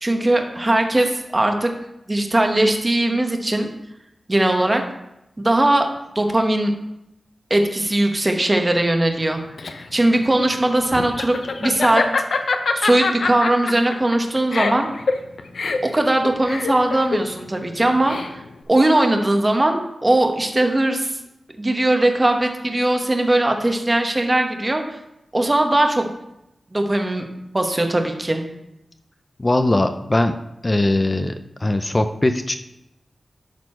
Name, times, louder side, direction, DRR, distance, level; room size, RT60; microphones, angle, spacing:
voice 1, 0.0-1.7 2.1-3.7 4.3-4.8 5.4-5.9 6.1-6.7 7.5-9.4 9.9-12.0 12.7-14.9 15.8-18.4 18.7-21.1 21.6-25.0 25.3-26.1 26.7-27.2 27.5-28.4, right 1 dB, 25° right, 4 dB, 1.0 m, -19 dB
Laughter, 9.2-18.6, left 4 dB, 80° left, 0.6 m, -25 dB
voice 2, 29.4-31.3 31.6-32.6, left 1 dB, 25° left, 8 dB, 0.4 m, -20 dB
11.5 x 4.2 x 4.3 m, 0.87 s
wide cardioid pair, 105°, 0 cm